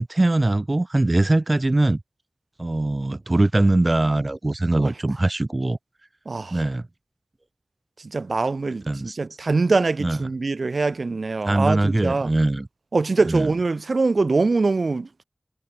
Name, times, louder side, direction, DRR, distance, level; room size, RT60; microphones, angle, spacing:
voice 1, 0.0-2.0 2.6-5.8 6.5-6.8 8.9-9.2 10.0-10.2 11.4-12.7 13.2-13.5, right 2 dB, 45° right, 0.5 m, -21 dB
voice 2, 6.3-6.6 8.0-12.3 12.9-15.1, right 3 dB, 80° right, 0.8 m, -23 dB
wide cardioid pair, 45°, 0 cm